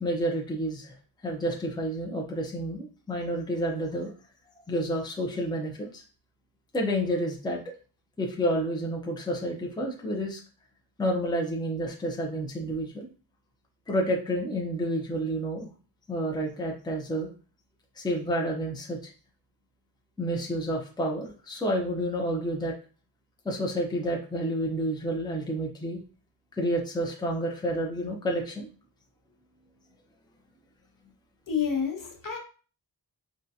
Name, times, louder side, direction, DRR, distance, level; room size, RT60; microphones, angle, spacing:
voice 1, 0.0-0.9 1.2-4.1 4.7-6.0 6.7-7.6 8.2-10.4 11.0-13.1 13.9-15.7 16.1-17.3 18.0-19.1 20.2-22.7 23.4-26.0 26.6-28.7, equal, 10° left, -1 dB, 0.6 m, -29 dB
voice 2, 31.5-32.4, left 7 dB, 50° left, 2 dB, 0.9 m, -29 dB
3.7 x 2.3 x 2.7 m, 0.37 s
wide cardioid pair, 90°, 42 cm